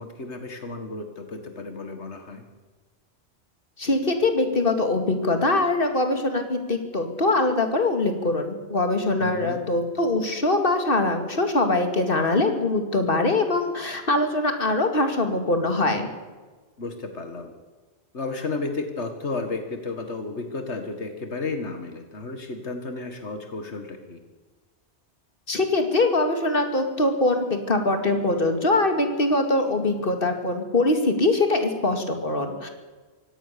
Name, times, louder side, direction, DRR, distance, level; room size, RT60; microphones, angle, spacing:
voice 1, 0.0-2.4 9.2-9.6 16.8-17.5 18.1-24.2, left 3 dB, 85° left, 6 dB, 2.1 m, -33 dB
voice 2, 3.8-16.1 25.5-32.7, left 2 dB, 55° left, 5 dB, 2.8 m, -23 dB
24.0 x 17.5 x 6.9 m, 1.3 s
omnidirectional pair, 1.1 m